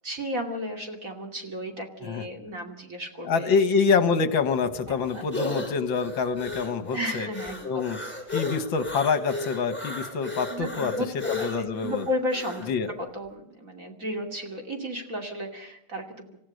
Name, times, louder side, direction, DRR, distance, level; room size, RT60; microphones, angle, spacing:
voice 1, 0.0-3.5 4.9-5.2 6.9-7.6 10.5-11.1 11.4-12.7 13.0-16.4, left 1 dB, 35° right, 3 dB, 3.0 m, -33 dB
voice 2, 3.3-7.3 7.6-8.0 8.3-10.9 11.3-12.1 12.7-12.9, left 5 dB, 65° left, 11 dB, 2.2 m, -26 dB
sound 1, 4.4-12.7, left 2 dB, 5° left, 4.5 m, -35 dB
28.0 x 15.5 x 6.5 m, 0.79 s
omnidirectional pair, 2.4 m